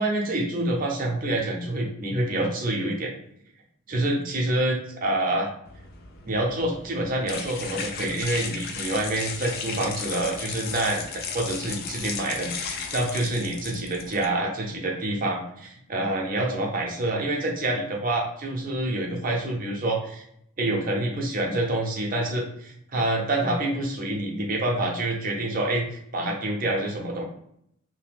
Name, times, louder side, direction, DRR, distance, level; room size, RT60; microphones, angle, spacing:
voice 1, 0.0-3.1 3.9-5.5 6.2-20.2 20.6-27.2, right 1 dB, 40° right, 0 dB, 0.7 m, -27 dB
sound 1, 5.7-14.2, left 5 dB, 45° left, 0.4 m, -35 dB
2.8 x 2.2 x 3.4 m, 0.72 s
head